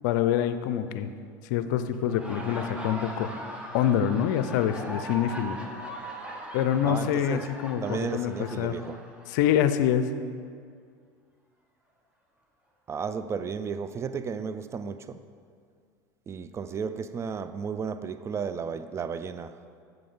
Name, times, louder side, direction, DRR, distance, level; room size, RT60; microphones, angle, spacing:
voice 1, 0.0-1.1 1.5-3.3 3.7-5.6 6.5-8.7 9.3-10.1, left 10 dB, 75° left, 0.5 m, -26 dB
Laughter, 1.9-9.6, equal, 10° right, 1.3 m, -40 dB
voice 2, 6.8-7.5 7.8-9.0 12.9-15.2 16.3-19.6, right 6 dB, 25° right, 0.4 m, -33 dB
7.8 x 5.3 x 5.6 m
supercardioid pair, 95°, 10 cm